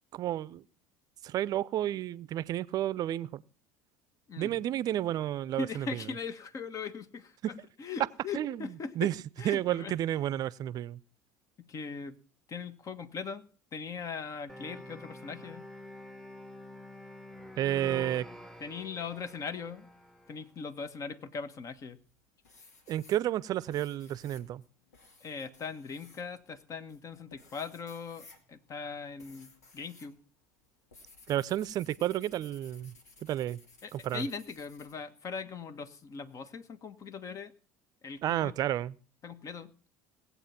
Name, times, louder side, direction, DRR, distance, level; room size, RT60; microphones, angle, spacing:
voice 1, 0.1-0.6 1.2-3.4 4.4-5.9 8.3-8.7 9.0-9.1 9.4-11.0 17.6-18.3 22.9-24.6 31.3-32.9 33.2-33.6 33.9-34.2 38.2-38.9, right 12 dB, 50° right, 0.6 m, -31 dB
voice 2, 4.3-4.6 5.6-7.4 7.8-9.1 9.4-9.9 11.6-12.2 12.5-13.4 13.7-15.7 18.6-19.9 20.3-22.0 25.2-30.2 33.8-37.5 38.0-38.5 39.2-39.7, left 5 dB, 40° left, 1.5 m, -40 dB
sound 1, 14.5-20.4, left 1 dB, 5° left, 1.2 m, -47 dB
sound 2, 21.7-22.1 22.4-30.1 30.4-34.9, left 3 dB, 85° left, 2.2 m, -58 dB
18.5 x 8.3 x 5.9 m
hypercardioid pair, 70°, 9 cm